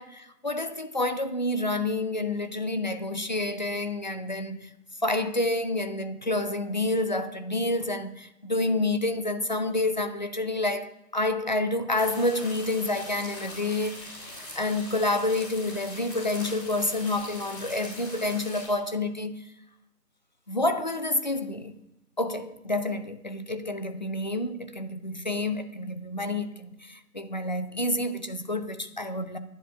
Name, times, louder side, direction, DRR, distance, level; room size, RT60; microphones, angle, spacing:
voice 1, 0.0-4.7 5.0-14.1 14.6-19.5 20.5-21.7 22.2-29.4, left 2 dB, 30° left, 0.6 m, -29 dB
sound 1, 12.0-18.7, left 1 dB, 10° left, 2.2 m, -42 dB
12.0 x 10.5 x 5.6 m
figure-of-eight pair, 155°, 47 cm